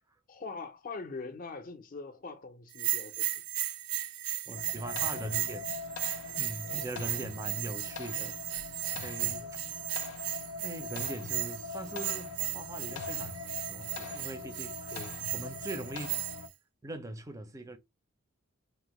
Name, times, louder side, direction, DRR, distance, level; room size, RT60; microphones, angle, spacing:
voice 1, 0.3-3.3 6.7-7.3 9.4-9.7 14.9-15.2, left 4 dB, 40° left, 0.5 m, -43 dB
Bell, 2.7-16.5, right 12 dB, 80° right, 0.4 m, -36 dB
voice 2, 4.5-5.8 6.4-8.8 9.0-9.6 10.6-13.3 13.7-15.0 15.3-16.2 16.8-17.8, right 2 dB, 15° right, 0.4 m, -41 dB
sound 1, 4.6-16.5, left 4 dB, 90° left, 0.4 m, -42 dB
3.5 x 2.1 x 2.9 m
head